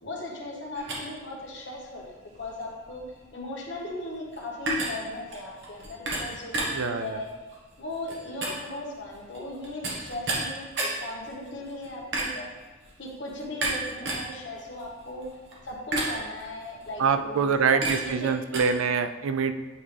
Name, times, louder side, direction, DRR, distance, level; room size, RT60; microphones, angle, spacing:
voice 1, 0.0-3.0 3.3-7.3 7.8-12.5 13.0-18.4, left 2 dB, 60° left, -1 dB, 1.1 m, -38 dB
sound 1, 0.7-18.6, right 2 dB, 60° right, 1.3 m, -34 dB
voice 2, 6.7-7.2 17.0-19.5, right 5 dB, 80° right, 9 dB, 0.4 m, -25 dB
8.5 x 3.6 x 3.3 m, 1.3 s
head